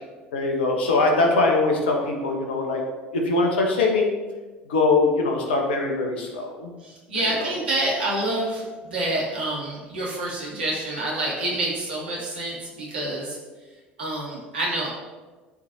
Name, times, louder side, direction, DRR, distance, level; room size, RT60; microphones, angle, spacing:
voice 1, 0.3-2.8 3.1-4.1 4.7-6.7, left 3 dB, 75° left, 1 dB, 1.4 m, -22 dB
voice 2, 6.8-13.4 14.0-14.9, right 1 dB, 75° right, -5 dB, 2.4 m, -27 dB
12.5 x 4.9 x 2.8 m, 1.3 s
figure-of-eight pair, 65°, 6 cm